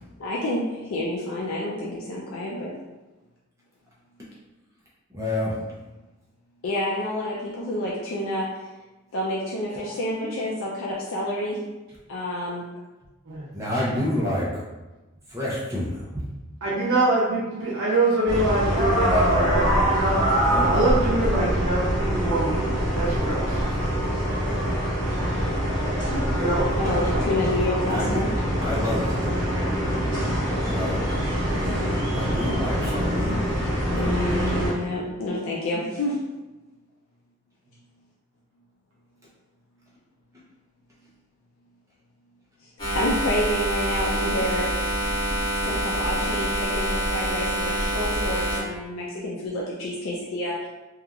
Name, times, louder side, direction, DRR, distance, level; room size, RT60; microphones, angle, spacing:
voice 1, 0.2-2.7 6.6-8.5 9.1-11.6 12.1-12.7 26.8-28.3 33.9-36.2 42.6-44.7 45.6-50.6, left 1 dB, 85° left, -4 dB, 0.4 m, -28 dB
voice 2, 5.1-5.6 13.5-14.6 15.3-16.0 20.5-20.7 27.8-28.2 28.6-29.2 30.6-31.0 31.4-34.6, left 1 dB, 15° right, -6 dB, 0.5 m, -29 dB
voice 3, 16.6-20.3 20.7-23.6 26.1-27.3, right 2 dB, 85° right, -7 dB, 0.7 m, -25 dB
sound 1, 18.3-34.7, equal, 5° left, 1.5 m, -24 dB
sound 2, 28.8-34.6, left 1 dB, 40° right, 0.9 m, -42 dB
sound 3, 42.8-48.6, right 1 dB, 20° left, 1.2 m, -26 dB
2.8 x 2.4 x 2.3 m, 1.1 s
head